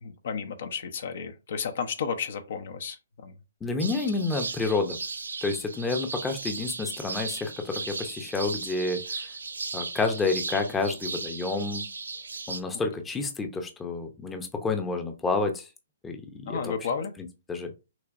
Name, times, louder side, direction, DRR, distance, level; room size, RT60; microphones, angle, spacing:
voice 1, 0.0-3.3 16.5-17.1, left 6 dB, 60° left, 0.8 m, -33 dB
voice 2, 3.6-5.0 5.4-9.0 9.7-11.9 12.5-15.7 16.0-16.2 16.5-16.7 17.5-17.7, left 3 dB, 10° left, 0.7 m, -29 dB
sound 1, 3.8-12.6, right 4 dB, 80° right, 0.7 m, -36 dB
6.1 x 2.9 x 2.5 m
figure-of-eight pair, 130°, 0 cm